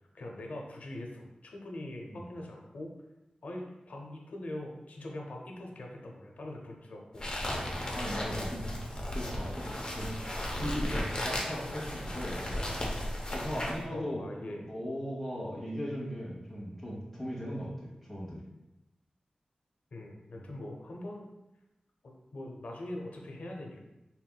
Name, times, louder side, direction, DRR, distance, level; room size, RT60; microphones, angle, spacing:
voice 1, 0.1-2.9 3.4-7.3 9.9-10.0 11.6-11.9 13.9-14.6 19.9-21.3 22.0-23.8, left 1 dB, 85° left, 0 dB, 0.7 m, -42 dB
sound 1, 7.2-13.8, left 1 dB, 30° left, 0.7 m, -35 dB
voice 2, 7.9-10.2 10.5-12.6 13.3-18.4 20.3-20.4, equal, ahead, -6 dB, 1.1 m, -38 dB
4.5 x 3.6 x 2.3 m, 0.96 s
wide cardioid pair, 105°, 2 cm